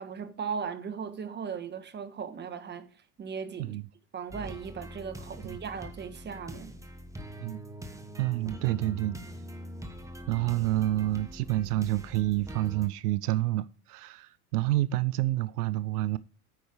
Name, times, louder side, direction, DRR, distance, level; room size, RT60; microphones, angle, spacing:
voice 1, 0.0-2.9 3.2-3.8 4.1-6.7, right 6 dB, 25° right, 1.3 m, -37 dB
sound 1, 4.3-12.9, equal, 5° right, 1.1 m, -43 dB
voice 2, 8.2-9.2 10.3-16.2, right 16 dB, 85° right, 0.6 m, -28 dB
9.2 x 5.5 x 4.9 m
supercardioid pair, 105°, 45 cm